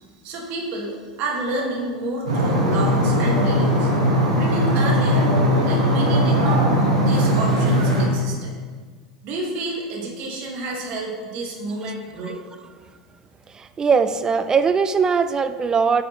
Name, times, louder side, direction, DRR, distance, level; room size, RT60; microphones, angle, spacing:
voice 1, 0.2-3.9 4.4-5.3 5.6-8.5 9.2-12.4, right 2 dB, 45° right, -1 dB, 1.9 m, -29 dB
sound 1, 2.3-8.1, equal, 75° right, 2.0 m, -19 dB
voice 2, 13.5-16.0, right 5 dB, 20° right, 10 dB, 0.4 m, -20 dB
9.0 x 6.8 x 3.1 m, 1.5 s
figure-of-eight pair, 85°, 3 cm